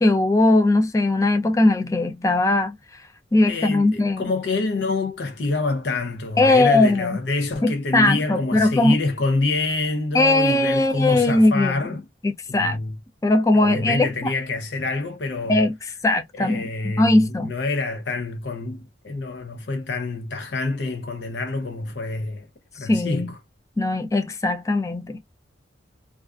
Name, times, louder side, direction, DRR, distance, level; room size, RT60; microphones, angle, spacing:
voice 1, 0.0-2.7 3.3-4.3 6.4-7.2 7.6-9.0 10.1-11.8 12.2-12.8 13.2-14.3 15.5-15.7 16.0-16.7 17.0-17.5 22.8-23.3 23.8-25.2, left 2 dB, 15° left, 0.3 m, -19 dB
voice 2, 3.4-12.1 12.5-13.0 13.5-15.7 16.3-22.5 22.7-23.4, left 3 dB, 65° left, 0.6 m, -27 dB
2.4 x 2.4 x 2.2 m
head